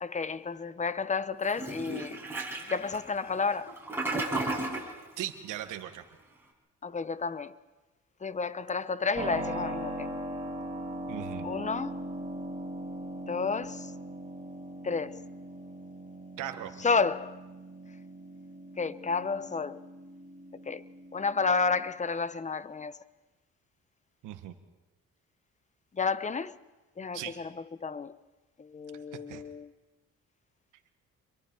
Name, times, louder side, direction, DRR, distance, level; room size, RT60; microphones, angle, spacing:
voice 1, 0.0-2.2 2.7-3.7 6.8-7.6 8.2-10.2 11.4-12.0 13.3-13.9 14.8-15.2 16.8-17.4 18.8-19.8 20.7-20.8 21.1-23.0 25.9-26.6 27.0-27.5 27.8-28.2 28.6-29.7, left 4 dB, 25° left, 0.8 m, -31 dB
Toilet flush, 1.5-4.9, right 2 dB, 10° right, 6.5 m, -34 dB
voice 2, 5.2-6.0 11.1-11.5 16.4-16.8 24.2-24.5 27.1-27.4 29.3-29.4, right 12 dB, 90° right, 1.4 m, -38 dB
Keyboard (musical), 9.2-21.9, right 1 dB, 25° right, 5.4 m, -40 dB
27.5 x 23.0 x 4.5 m
cardioid pair, 90°, 30 cm